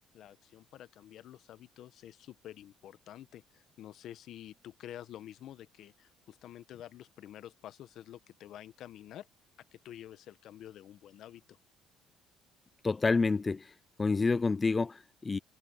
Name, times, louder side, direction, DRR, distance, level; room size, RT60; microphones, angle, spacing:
voice 1, 0.1-9.3 9.7-11.6, left 11 dB, 65° left, 1.3 m, -49 dB
voice 2, 12.8-13.7 14.0-15.4, left 4 dB, 25° left, 0.4 m, -28 dB
supercardioid pair, 90°, 0 cm